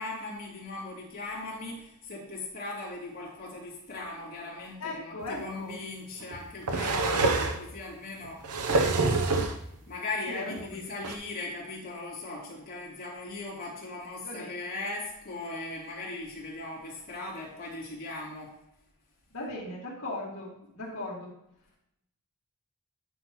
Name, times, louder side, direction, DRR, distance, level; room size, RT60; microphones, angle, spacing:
voice 1, 0.0-8.4 9.9-18.5, left 2 dB, 40° left, -6 dB, 2.9 m, -39 dB
voice 2, 4.8-5.8 10.3-10.8 14.2-14.5 19.3-21.3, left 2 dB, 65° left, -6 dB, 2.2 m, -38 dB
sound 1, 5.2-5.3 6.3-7.6 8.2-9.6 10.6-10.7 11.0-11.2, right 3 dB, 85° right, 0.8 m, -26 dB
9.9 x 5.9 x 3.1 m, 0.80 s
head